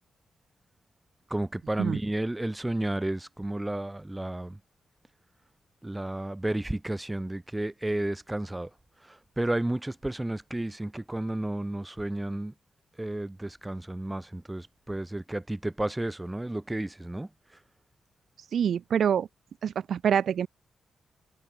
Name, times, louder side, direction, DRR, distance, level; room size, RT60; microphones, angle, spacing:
voice 1, 1.3-4.6 5.8-8.7 9.0-12.5 13.0-17.3, right 1 dB, 15° right, 2.2 m, -32 dB
voice 2, 18.5-19.3 19.6-20.5, right 8 dB, 70° right, 1.2 m, -25 dB
hypercardioid pair, 40°, 0 cm